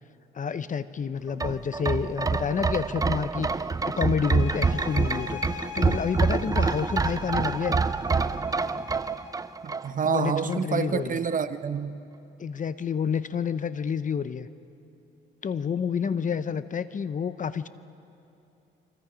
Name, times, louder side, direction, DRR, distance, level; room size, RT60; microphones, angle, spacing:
voice 1, 0.3-7.8 10.0-11.2 12.4-14.5 15.4-17.7, left 6 dB, 40° left, 13 dB, 0.8 m, -29 dB
sound 1, 1.3-10.2 10.5-10.6, right 4 dB, 20° right, 0.5 m, -27 dB
sound 2, 4.2-9.5, left 7 dB, 75° left, 3.7 m, -42 dB
voice 2, 9.6-12.0, right 6 dB, 40° right, 11 dB, 1.0 m, -28 dB
27.5 x 25.0 x 5.1 m, 2.9 s
cardioid pair, 90°, 20 cm